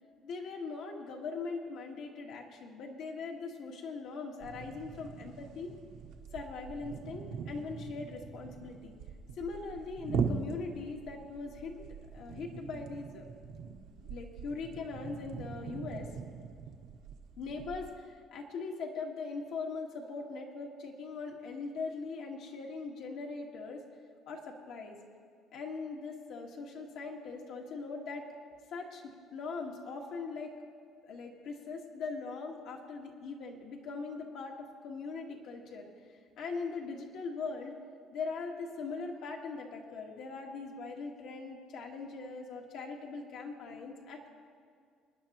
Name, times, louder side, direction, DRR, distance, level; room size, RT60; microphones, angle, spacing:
voice 1, 0.2-5.8 6.3-8.9 9.4-11.9 12.1-13.3 14.0-16.1 17.4-23.8 24.3-25.0 25.5-28.2 28.7-29.0 29.3-30.5 31.0-35.9 36.4-37.7 38.1-44.3, left 4 dB, 60° left, 0 dB, 1.6 m, -41 dB
sound 1, 4.4-17.9, right 5 dB, 75° right, 1.1 m, -41 dB
26.0 x 10.0 x 3.0 m, 2.2 s
cardioid pair, 165°, 0 cm